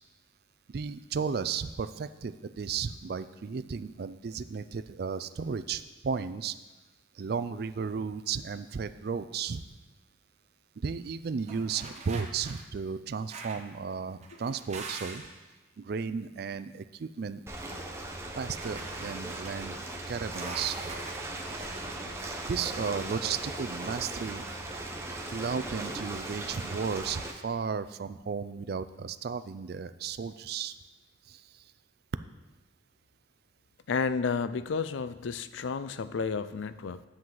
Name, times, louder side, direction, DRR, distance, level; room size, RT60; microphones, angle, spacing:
voice 1, 0.7-6.6 7.1-9.6 10.8-15.2 15.8-17.4 18.3-19.8 20.1-20.9 22.5-24.5 25.3-30.7 31.3-31.6, right 5 dB, 55° right, 12 dB, 0.4 m, -34 dB
sound 1, 11.5-12.6 13.3-13.7 14.2-15.4 18.5-19.5 20.3-22.0, right 3 dB, 35° right, 0.9 m, -44 dB
Ocean, 17.5-27.3, right 2 dB, 15° right, 0.8 m, -38 dB
voice 2, 33.9-37.0, left 5 dB, 80° left, 14 dB, 0.4 m, -31 dB
10.0 x 7.5 x 3.9 m, 1.1 s
head